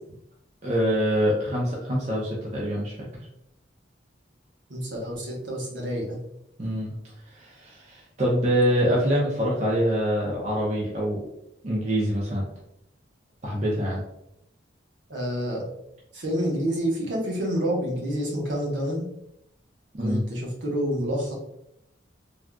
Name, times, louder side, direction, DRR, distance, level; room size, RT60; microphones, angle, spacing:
voice 1, 0.6-3.1 6.6-6.9 7.3-11.3 11.6-12.4 13.4-14.0 19.9-20.2, equal, 35° right, -4 dB, 0.5 m, -25 dB
voice 2, 4.7-6.2 15.1-15.6 16.1-19.1 20.0-21.4, equal, 70° right, -2 dB, 0.9 m, -28 dB
3.5 x 2.4 x 2.2 m, 0.79 s
head